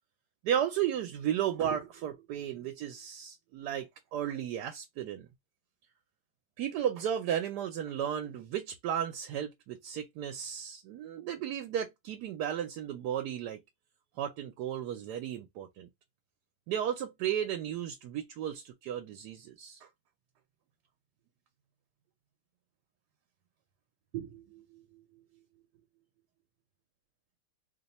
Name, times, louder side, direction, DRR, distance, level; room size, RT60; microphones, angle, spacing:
voice 1, 0.4-5.3 6.6-13.6 14.2-15.9 16.7-19.9 24.1-25.5, right 10 dB, 80° right, 1.2 m, -34 dB
3.0 x 2.2 x 4.0 m
omnidirectional pair, 1.8 m